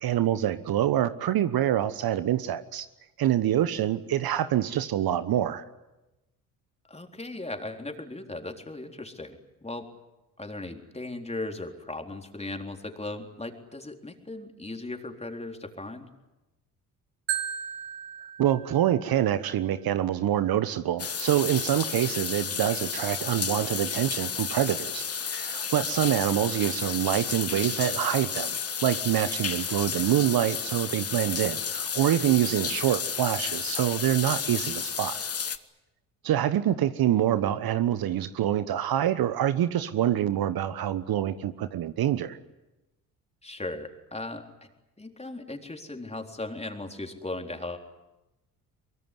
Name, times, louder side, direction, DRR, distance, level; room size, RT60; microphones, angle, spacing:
voice 1, 0.0-2.9 3.2-5.6 18.4-28.6 28.8-35.2 36.2-42.4, right 11 dB, 55° right, 13 dB, 1.2 m, -26 dB
voice 2, 6.8-9.9 10.4-16.1 43.4-44.7 45.0-47.8, left 2 dB, 15° left, 4 dB, 4.0 m, -37 dB
Marimba xylophone, 17.3-19.4, right 10 dB, 70° right, 1.8 m, -35 dB
sound 1, 21.0-35.6, left 6 dB, 35° left, 1.6 m, -32 dB
24.0 x 23.0 x 9.6 m, 1.0 s
hypercardioid pair, 55°, 44 cm